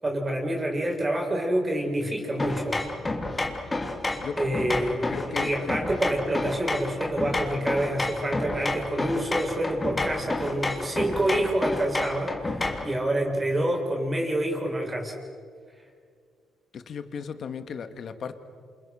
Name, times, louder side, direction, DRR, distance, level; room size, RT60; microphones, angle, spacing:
voice 1, 0.0-2.8 4.4-15.2, right 1 dB, 25° right, 1 dB, 6.4 m, -27 dB
sound 1, 2.4-12.9, left 2 dB, 20° left, 3.2 m, -30 dB
voice 2, 5.1-5.8 16.7-18.3, left 6 dB, 55° left, 9 dB, 2.0 m, -35 dB
28.5 x 27.0 x 6.6 m, 2.1 s
cardioid pair, 90°, 0 cm